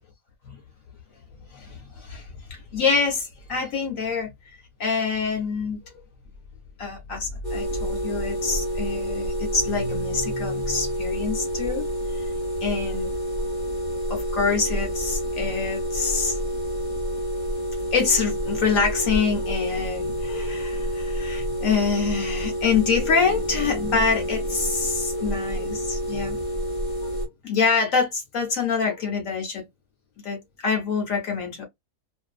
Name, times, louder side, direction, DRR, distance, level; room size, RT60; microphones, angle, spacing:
voice 1, 1.5-4.3 4.8-5.8 6.8-11.8 12.6-13.1 13.4-13.5 14.1-16.4 17.9-26.4 27.0-29.7 30.2-31.6, left 5 dB, 65° left, 1.0 m, -26 dB
sound 1, 7.4-27.3, equal, 35° left, 0.9 m, -28 dB
2.5 x 2.3 x 2.3 m
omnidirectional pair, 1.6 m